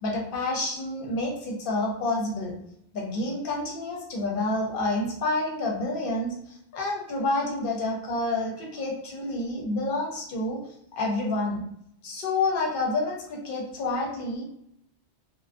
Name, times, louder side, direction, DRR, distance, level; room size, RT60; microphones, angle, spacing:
voice 1, 0.0-2.5 2.9-10.6 11.0-11.6 12.0-14.4, left 2 dB, 60° left, -1 dB, 0.8 m, -28 dB
2.4 x 2.1 x 2.4 m, 0.74 s
omnidirectional pair, 1.1 m